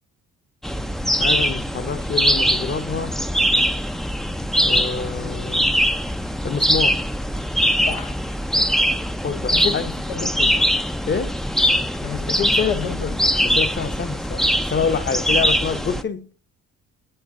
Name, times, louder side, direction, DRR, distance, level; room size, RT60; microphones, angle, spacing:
sound 1, 0.6-16.0, equal, ahead, 0.4 m, -22 dB
voice 1, 1.2-3.2 4.6-5.6 6.4-7.0 9.2-9.9 11.1-11.4 13.4-16.3, left 5 dB, 30° left, 0.8 m, -27 dB
voice 2, 9.5-10.7 12.0-13.4, left 8 dB, 85° left, 0.9 m, -28 dB
9.0 x 6.8 x 3.7 m
supercardioid pair, 65°, 36 cm